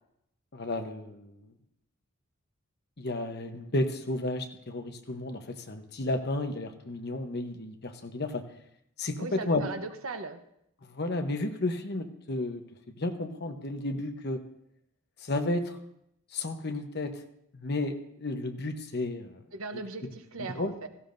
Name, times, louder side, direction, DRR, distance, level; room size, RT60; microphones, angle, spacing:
voice 1, 0.5-1.4 3.0-8.4 9.0-9.6 10.9-12.6 13.0-14.4 15.2-15.8 16.3-17.2 17.5-19.4 20.4-20.7, left 2 dB, 50° left, 6 dB, 1.0 m, -32 dB
voice 2, 9.2-10.4 19.5-20.9, right 3 dB, 70° right, 7 dB, 0.9 m, -38 dB
16.5 x 15.0 x 2.6 m, 0.76 s
head